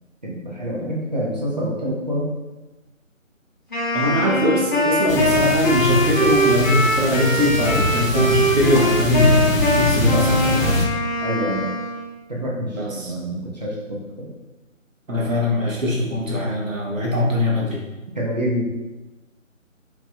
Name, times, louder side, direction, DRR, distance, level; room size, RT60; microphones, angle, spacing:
voice 1, 0.2-2.3 11.2-11.7 12.3-14.3 18.1-18.8, equal, 35° right, -4 dB, 0.5 m, -26 dB
Wind instrument woodwind instrument, 3.7-12.1, equal, 35° left, 0.7 m, -22 dB
voice 2, 3.9-10.8 12.7-13.1 15.1-17.8, left 1 dB, 75° right, -2 dB, 1.0 m, -21 dB
sound 1, 5.1-10.9, left 1 dB, 75° left, 0.7 m, -24 dB
3.6 x 2.9 x 2.3 m, 1.1 s
figure-of-eight pair, 155°, 40 cm